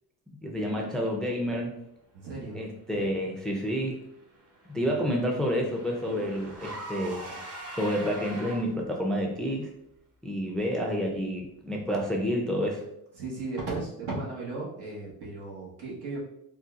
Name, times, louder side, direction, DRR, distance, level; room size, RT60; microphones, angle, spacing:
voice 1, 0.4-1.8 2.5-4.0 4.7-7.4 7.8-9.7 10.2-12.8, equal, ahead, 0 dB, 0.4 m, -29 dB
voice 2, 2.1-2.6 4.8-5.0 13.2-16.2, right 3 dB, 75° right, -4 dB, 1.3 m, -36 dB
Car / Engine, 3.9-9.0, right 1 dB, 40° right, 1.0 m, -42 dB
3.9 x 2.3 x 2.4 m, 0.79 s
cardioid pair, 115°, 39 cm